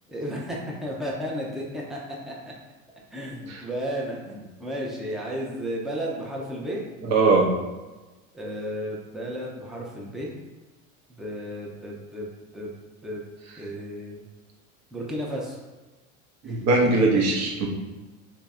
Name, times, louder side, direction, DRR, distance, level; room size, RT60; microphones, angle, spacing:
voice 1, 0.1-2.5 3.1-6.8 8.3-10.3 11.1-12.8 13.0-13.2 13.6-14.2 14.9-15.6 16.4-16.6, equal, ahead, -3 dB, 0.6 m, -33 dB
voice 2, 7.0-7.5 16.4-17.7, right 3 dB, 40° right, 0 dB, 0.9 m, -20 dB
3.2 x 2.8 x 3.6 m, 1.2 s
hypercardioid pair, 100°, 42 cm